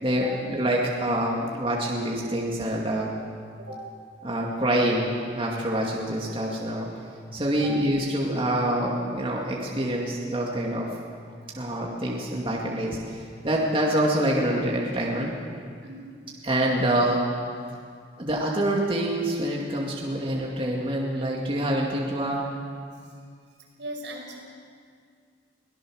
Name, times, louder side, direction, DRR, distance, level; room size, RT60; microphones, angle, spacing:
voice 1, 0.0-3.1 4.2-6.9 7.3-10.9 11.6-15.4 16.4-17.3 18.2-22.5, right 1 dB, 30° right, -3 dB, 2.3 m, -26 dB
voice 2, 3.6-3.9 7.5-7.7 11.4-11.6 15.8-16.2 22.9-23.1 23.8-24.4, right 1 dB, 85° right, -2 dB, 5.9 m, -39 dB
24.0 x 17.5 x 6.4 m, 2.1 s
head